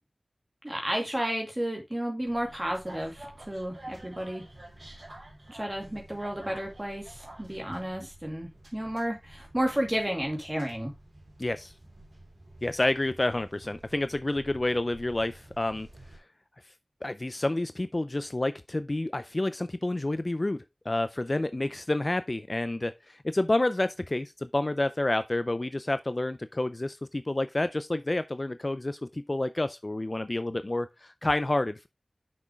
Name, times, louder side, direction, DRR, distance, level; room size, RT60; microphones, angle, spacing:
voice 1, 0.6-4.4 5.5-10.9, right 1 dB, 20° right, 2.3 m, -32 dB
sound 1, 2.3-16.2, right 1 dB, 50° right, 3.3 m, -50 dB
voice 2, 11.4-11.7 12.6-15.9 17.0-31.9, left 2 dB, 40° left, 0.5 m, -29 dB
6.4 x 5.9 x 3.5 m
wide cardioid pair, 55°, 0 cm